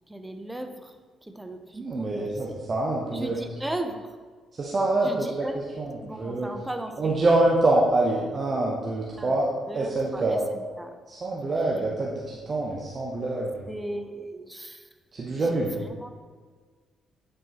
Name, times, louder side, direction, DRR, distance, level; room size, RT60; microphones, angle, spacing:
voice 1, 0.1-0.9 1.2-2.6 3.1-4.1 5.0-5.6 6.0-7.1 9.2-9.4 9.7-11.0 11.4-12.0 13.7-14.9 15.3-16.1, right 1 dB, 10° right, 6 dB, 0.8 m, -37 dB
voice 2, 1.8-3.4 4.5-5.5 5.8-6.5 7.0-9.5 9.7-10.4 11.1-13.7 15.1-15.8, right 2 dB, 40° right, -3 dB, 0.9 m, -25 dB
8.9 x 4.5 x 3.1 m, 1.5 s
hypercardioid pair, 45°, 0 cm